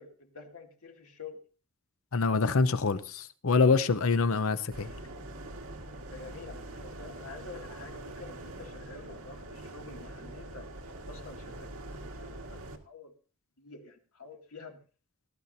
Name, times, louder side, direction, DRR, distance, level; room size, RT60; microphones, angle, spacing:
voice 1, 0.0-1.4 6.1-10.7 11.1-11.9 12.5-13.1 13.6-14.8, left 4 dB, 90° left, 2.4 m, -48 dB
voice 2, 2.1-4.9, left 4 dB, 70° left, 0.7 m, -25 dB
sound 1, 4.7-12.8, right 1 dB, 80° right, 1.9 m, -44 dB
18.5 x 12.0 x 2.7 m
head